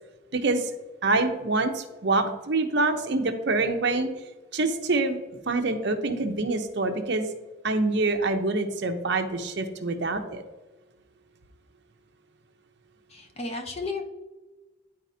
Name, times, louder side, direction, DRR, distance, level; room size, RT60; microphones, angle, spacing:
voice 1, 0.3-0.7 1.0-4.1 4.5-5.2 5.5-7.3 7.6-10.4, right 3 dB, 55° right, 5 dB, 0.7 m, -25 dB
voice 2, 13.1-14.0, left 3 dB, 30° left, 4 dB, 0.7 m, -33 dB
10.5 x 4.2 x 2.7 m, 1.2 s
head